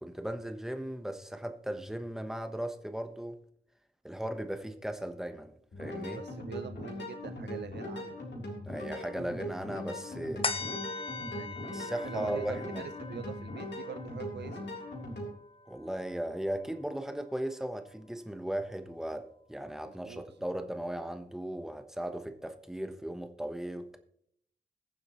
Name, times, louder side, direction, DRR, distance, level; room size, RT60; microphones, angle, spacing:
voice 1, 0.0-3.4 4.0-6.2 8.6-10.5 11.7-12.9 15.7-24.0, right 1 dB, 5° right, 1.0 m, -37 dB
sound 1, 5.7-15.3, left 1 dB, 85° left, 3.5 m, -40 dB
voice 2, 6.1-8.2 11.3-14.7 19.8-20.2, right 7 dB, 80° right, 0.5 m, -45 dB
sound 2, 10.4-17.2 17.6-17.7, left 4 dB, 35° left, 0.6 m, -41 dB
21.5 x 7.2 x 3.1 m
wide cardioid pair, 150°, 17 cm